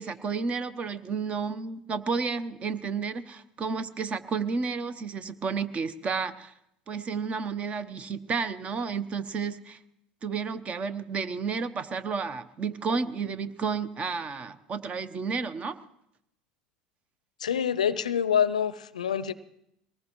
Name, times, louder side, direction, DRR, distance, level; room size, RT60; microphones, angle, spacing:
voice 1, 0.0-6.5 6.9-9.8 10.2-15.8, right 5 dB, 35° right, 14 dB, 0.8 m, -31 dB
voice 2, 17.4-19.3, left 8 dB, 85° left, 17 dB, 0.5 m, -26 dB
22.5 x 19.0 x 3.1 m, 0.79 s
hypercardioid pair, 75°, 4 cm